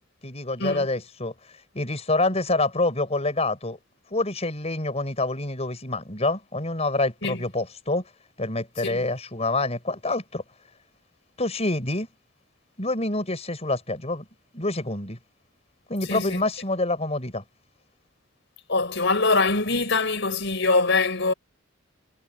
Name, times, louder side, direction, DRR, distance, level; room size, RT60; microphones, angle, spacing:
voice 1, 0.2-1.3 1.7-3.8 4.1-8.1 8.4-10.4 11.4-12.1 12.8-14.3 14.5-15.2 15.9-17.4, left 2 dB, 30° left, 5.1 m, -26 dB
voice 2, 16.1-16.4 18.7-21.3, left 3 dB, 60° left, 5.6 m, -23 dB
head